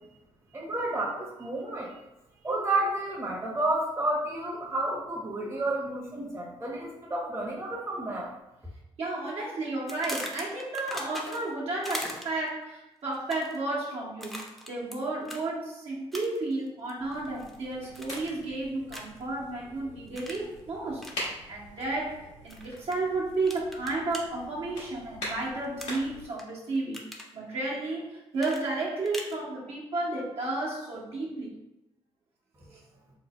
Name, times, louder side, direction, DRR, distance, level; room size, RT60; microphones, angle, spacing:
voice 1, 0.5-1.9 2.4-8.3 32.7-32.8, right 2 dB, 25° right, -3 dB, 0.9 m, -31 dB
voice 2, 9.0-31.6, right 2 dB, 60° right, -6 dB, 1.1 m, -32 dB
sound 1, 9.9-11.5 11.8-12.5 13.1-13.6 14.2-15.0 15.3-15.4 16.1-16.5 16.9-17.6 17.9-18.4 18.9-19.2 20.2-20.5 21.0-21.2 22.5-23.0 23.5-24.2 25.8-26.4 26.8-27.3 28.4-29.4, equal, ahead, 0.7 m, -39 dB
sound 2, 17.0-26.3, left 1 dB, 85° left, 1.2 m, -43 dB
3.1 x 2.0 x 4.1 m, 0.94 s
supercardioid pair, 60°, 12 cm